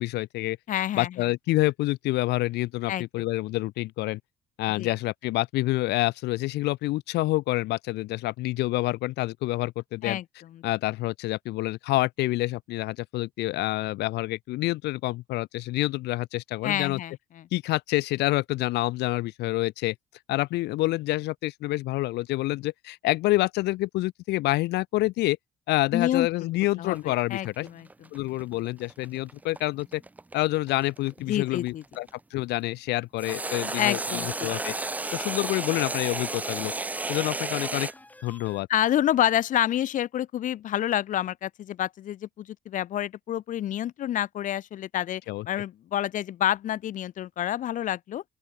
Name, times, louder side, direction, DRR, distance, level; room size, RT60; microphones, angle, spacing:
voice 1, 0.0-0.6 0.9-4.2 4.6-10.2 10.6-17.0 17.5-19.9 20.3-25.4 25.7-27.7 28.1-30.0 30.3-32.1 32.3-34.7 35.1-36.7 37.1-37.9 38.2-38.7 45.3-45.5, left 18 dB, 80° left, 1.1 m, -27 dB
voice 2, 0.7-1.1 2.9-3.0 4.8-4.9 10.0-10.2 10.5-10.6 16.6-17.5 25.9-26.5 26.8-27.9 31.3-31.8 33.8-34.5 38.7-48.2, left 11 dB, 50° left, 0.5 m, -28 dB
sound 1, 26.9-32.1 33.2-37.9, right 2 dB, 10° right, 0.4 m, -33 dB
sound 2, 33.3-38.6, left 1 dB, 10° left, 7.1 m, -51 dB
open air
cardioid pair, 110°, 17 cm